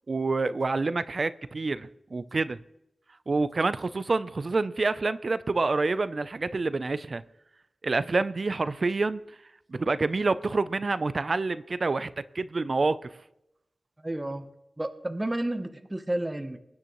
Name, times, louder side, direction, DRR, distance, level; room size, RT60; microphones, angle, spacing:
voice 1, 0.1-2.6 3.3-7.2 7.8-9.2 9.7-12.1 12.3-13.0, right 3 dB, 50° right, 14 dB, 0.4 m, -27 dB
voice 2, 14.0-14.5 14.8-16.6, right 1 dB, 20° right, 7 dB, 0.8 m, -31 dB
21.5 x 9.5 x 3.0 m, 0.86 s
wide cardioid pair, 85°, 0 cm